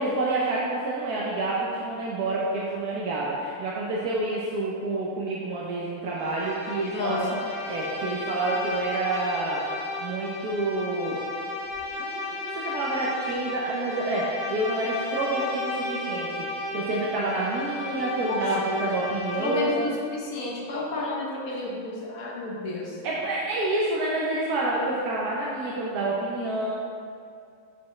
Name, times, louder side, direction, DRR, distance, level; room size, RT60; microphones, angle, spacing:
voice 1, 0.0-9.6 10.0-11.2 12.0-19.8 23.0-26.7, right 2 dB, 60° right, -5 dB, 1.0 m, -28 dB
Bowed string instrument, 6.1-20.0, left 2 dB, 20° right, 1.1 m, -34 dB
voice 2, 6.9-7.4 18.3-18.8 19.4-23.0, left 2 dB, 55° left, -2 dB, 1.1 m, -31 dB
7.2 x 6.7 x 3.2 m, 2.3 s
omnidirectional pair, 2.3 m